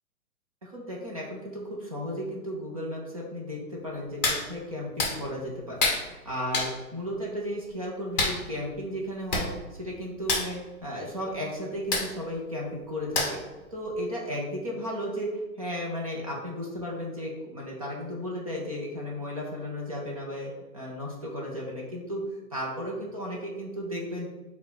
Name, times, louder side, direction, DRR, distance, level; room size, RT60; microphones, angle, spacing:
voice 1, 0.6-13.4 13.7-24.3, equal, 25° right, -3 dB, 0.5 m, -34 dB
Hands, 4.2-4.4 5.0-5.1 5.8-6.0 6.5-6.7 8.2-8.4 9.0-9.1 9.3-9.5 9.7-9.9 10.2-10.5 11.9-12.1 13.1-13.5 13.9-14.0, left 3 dB, 30° left, 0.8 m, -26 dB
4.4 x 2.3 x 4.7 m, 1.2 s
hypercardioid pair, 170°, 44 cm